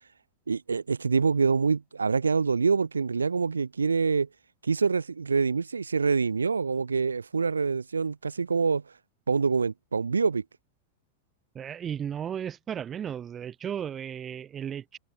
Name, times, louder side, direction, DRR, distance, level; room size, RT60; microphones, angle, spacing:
voice 1, 0.5-4.3 4.6-8.8 9.3-10.4, right 5 dB, 75° right, 0.5 m, -25 dB
voice 2, 11.5-15.0, right 8 dB, 25° right, 0.5 m, -35 dB
figure-of-eight pair, 90°, 0 cm